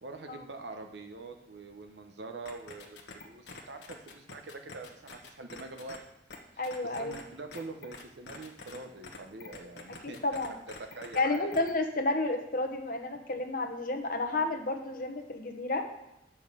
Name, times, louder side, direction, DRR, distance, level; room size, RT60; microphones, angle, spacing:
voice 1, 0.0-6.0 6.5-10.2 10.5-11.5, right 3 dB, 75° right, 6 dB, 0.9 m, -44 dB
sound 1, 2.5-6.0 6.3-6.4 6.6-7.2 7.5-8.8 9.0-11.7, left 3 dB, 75° left, 1.2 m, -46 dB
voice 2, 6.6-7.2 10.2-10.5 11.1-15.8, left 2 dB, 50° left, 5 dB, 1.1 m, -31 dB
8.9 x 5.8 x 6.7 m, 0.87 s
head